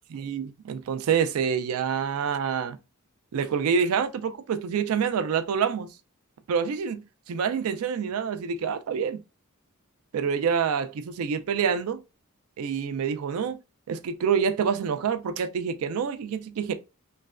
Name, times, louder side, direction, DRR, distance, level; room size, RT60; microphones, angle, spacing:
voice 1, 0.1-2.8 3.3-5.9 6.5-9.2 10.1-12.0 12.6-13.6 13.9-16.7, right 6 dB, 80° right, 0.4 m, -27 dB
3.2 x 2.1 x 2.4 m
head